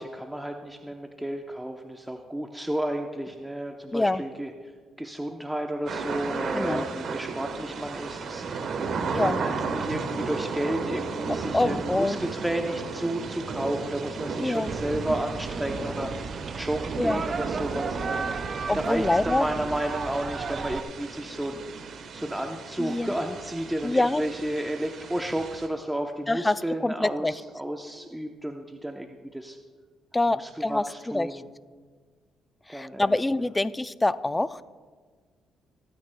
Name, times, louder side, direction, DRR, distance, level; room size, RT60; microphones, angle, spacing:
voice 1, 0.0-4.5 5.0-8.5 9.2-18.3 18.7-29.6 30.3-31.4 32.7-33.5, right 1 dB, 5° right, 3 dB, 0.7 m, -32 dB
sound 1, 5.9-25.7, right 4 dB, 65° right, 1.1 m, -34 dB
voice 2, 9.1-9.4 11.5-12.2 14.4-14.7 17.0-17.2 18.7-19.4 22.8-23.1 23.8-24.2 26.3-27.3 30.1-30.8 31.1-31.3 32.7-34.6, left 2 dB, 15° left, 14 dB, 0.4 m, -25 dB
sound 2, 14.7-20.8, right 5 dB, 45° right, 0.5 m, -34 dB
26.0 x 9.5 x 2.2 m, 1.5 s
cardioid pair, 90°, 0 cm